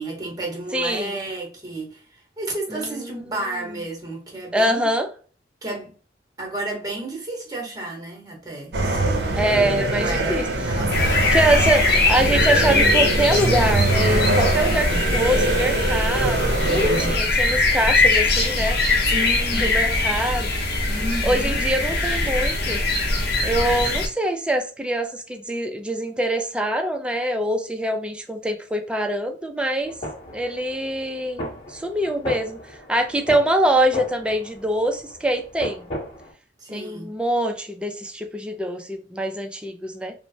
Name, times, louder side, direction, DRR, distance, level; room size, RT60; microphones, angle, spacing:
voice 1, 0.0-4.9 5.6-5.9 6.4-9.6 9.9-11.3 14.5-14.9 19.1-19.8 20.9-21.6 36.6-37.1, right 2 dB, 20° right, 0.9 m, -32 dB
voice 2, 0.7-1.2 2.7-3.4 4.5-5.1 9.4-10.5 11.3-18.8 19.5-20.5 21.2-22.8 23.4-30.0 30.3-35.9 36.7-40.1, right 1 dB, 5° right, 0.3 m, -24 dB
sound 1, 8.7-17.2, right 2 dB, 65° right, 0.6 m, -23 dB
sound 2, 10.9-24.1, left 2 dB, 60° left, 0.7 m, -22 dB
sound 3, 29.8-36.3, left 1 dB, 30° left, 1.0 m, -36 dB
3.1 x 2.0 x 2.5 m
head